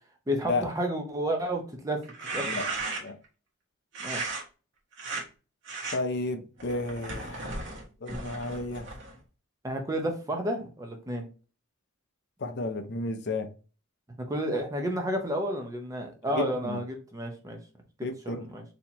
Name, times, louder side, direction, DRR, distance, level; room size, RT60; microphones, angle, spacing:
voice 1, 0.3-2.0 2.3-2.4 4.0-4.2 9.6-11.3 14.3-17.6 18.3-18.6, right 1 dB, 15° right, 0.6 m, -31 dB
sound 1, 2.0-3.3 3.9-4.4 4.9-5.2 5.7-6.0 6.6-9.2, right 3 dB, 60° right, 1.1 m, -35 dB
voice 2, 5.9-7.7 8.0-8.9 12.4-13.5 16.3-16.8 18.0-18.4, left 2 dB, 55° left, 0.5 m, -32 dB
4.2 x 2.8 x 2.7 m
head